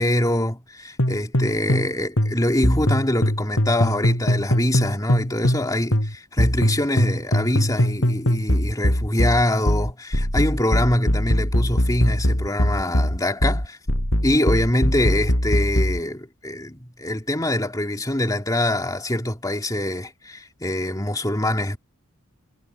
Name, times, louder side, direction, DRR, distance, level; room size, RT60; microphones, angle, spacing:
voice 1, 0.0-13.8 14.2-21.8, left 1 dB, 15° left, 2.7 m, -24 dB
sound 1, 1.0-1.9 2.2-5.7 5.9-16.0, equal, 60° left, 6.7 m, -21 dB
head